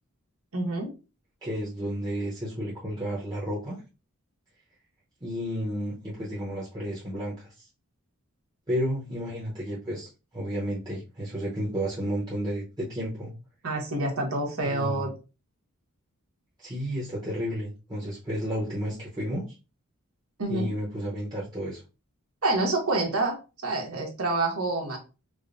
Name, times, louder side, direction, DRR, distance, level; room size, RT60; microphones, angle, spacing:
voice 1, 0.5-0.9 13.6-15.1 20.4-20.7 22.4-23.4 23.6-25.0, right 2 dB, 85° right, 1 dB, 1.2 m, -27 dB
voice 2, 1.4-3.8 5.2-7.7 8.7-13.3 14.6-15.1 16.6-19.6 20.5-21.8, equal, 20° right, -6 dB, 0.8 m, -32 dB
4.8 x 2.2 x 2.5 m, 0.31 s
head